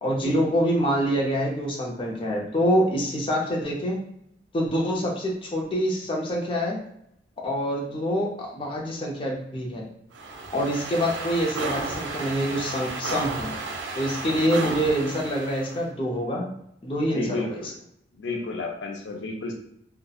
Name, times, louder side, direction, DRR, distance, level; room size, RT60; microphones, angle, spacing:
voice 1, 0.0-4.0 4.5-6.8 7.4-9.8 10.5-13.5 14.0-16.5 16.8-17.6, equal, 30° left, -1 dB, 0.4 m, -26 dB
sound 1, 10.1-15.8, right 3 dB, 75° right, 0.4 m, -33 dB
voice 2, 17.1-17.7 18.2-19.5, left 3 dB, 85° left, 2 dB, 0.4 m, -32 dB
2.7 x 2.0 x 2.3 m, 0.73 s
head